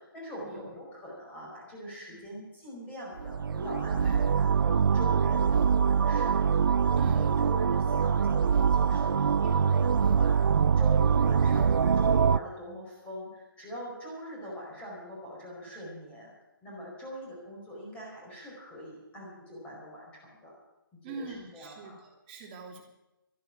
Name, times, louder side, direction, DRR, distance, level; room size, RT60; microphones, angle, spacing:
voice 1, 0.0-6.4 6.8-10.4 10.8-16.3 16.6-20.5 21.0-22.0, right 1 dB, 10° left, -4 dB, 4.9 m, -42 dB
sound 1, 3.2-12.4, right 6 dB, 65° right, 0.5 m, -24 dB
voice 2, 6.9-7.3 21.0-22.8, right 4 dB, 25° right, 0 dB, 3.0 m, -43 dB
13.5 x 11.5 x 7.3 m, 0.96 s
hypercardioid pair, 155°, 12 cm